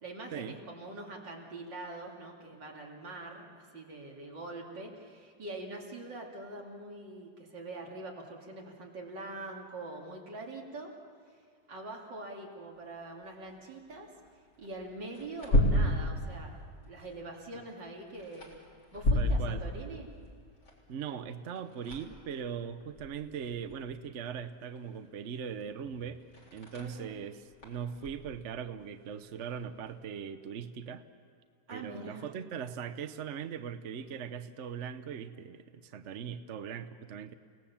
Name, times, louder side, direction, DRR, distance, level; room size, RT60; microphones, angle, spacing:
voice 1, 0.0-10.9 11.7-14.1 14.6-16.6 16.9-18.6 18.9-20.1 26.8-27.2 31.7-32.3, right 2 dB, 75° right, -1 dB, 3.4 m, -44 dB
sound 1, 12.7-30.0, left 1 dB, 70° left, 4.5 m, -35 dB
voice 2, 19.1-19.7 20.9-26.2 26.5-31.0 31.7-37.3, right 7 dB, 50° right, 10 dB, 0.9 m, -40 dB
30.0 x 18.5 x 7.2 m, 2.3 s
omnidirectional pair, 2.0 m